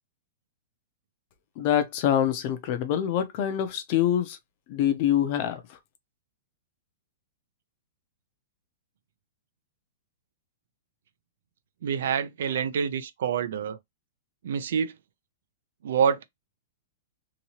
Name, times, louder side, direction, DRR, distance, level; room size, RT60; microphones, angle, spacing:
voice 1, 1.6-4.4 4.7-5.6, left 10 dB, 30° left, 0.5 m, -25 dB
voice 2, 11.8-13.8 14.4-14.9 15.8-16.3, right 7 dB, 60° right, 0.4 m, -26 dB
2.9 x 2.8 x 2.8 m
hypercardioid pair, 175°, 0 cm